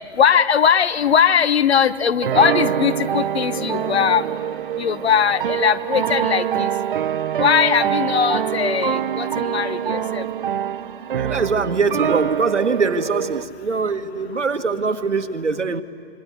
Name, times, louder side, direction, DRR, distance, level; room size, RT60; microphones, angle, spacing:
voice 1, 0.2-4.3 4.8-6.7 7.4-10.2, left 7 dB, 65° left, 17 dB, 1.1 m, -19 dB
sound 1, 2.2-13.4, right 9 dB, 50° right, 0.7 m, -24 dB
voice 2, 11.1-15.8, right 4 dB, 90° right, 9 dB, 1.4 m, -22 dB
26.0 x 23.5 x 8.4 m, 2.6 s
figure-of-eight pair, 140°, 35 cm